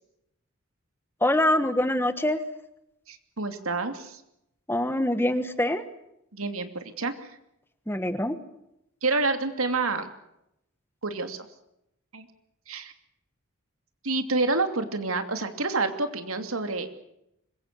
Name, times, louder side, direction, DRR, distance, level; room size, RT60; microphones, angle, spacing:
voice 1, 1.2-2.4 4.7-5.8 7.9-8.4, left 1 dB, 10° left, 10 dB, 1.4 m, -24 dB
voice 2, 3.1-4.2 6.3-7.1 9.0-10.1 11.0-11.5 12.1-12.3 12.7-12.9 14.0-16.9, right 3 dB, 85° right, 7 dB, 2.8 m, -28 dB
25.5 x 22.5 x 6.9 m, 0.81 s
head